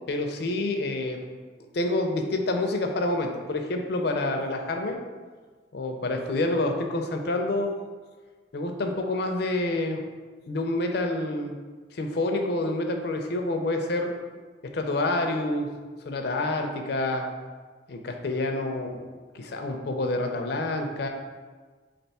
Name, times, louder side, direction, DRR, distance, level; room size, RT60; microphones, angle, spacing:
voice 1, 0.1-1.2 1.7-5.0 5.7-7.7 8.5-10.0 10.5-11.5 11.9-14.1 14.7-15.7 16.0-17.3 17.9-19.0 19.3-21.1, left 2 dB, 60° left, 4 dB, 0.5 m, -27 dB
3.7 x 3.4 x 4.1 m, 1.4 s
head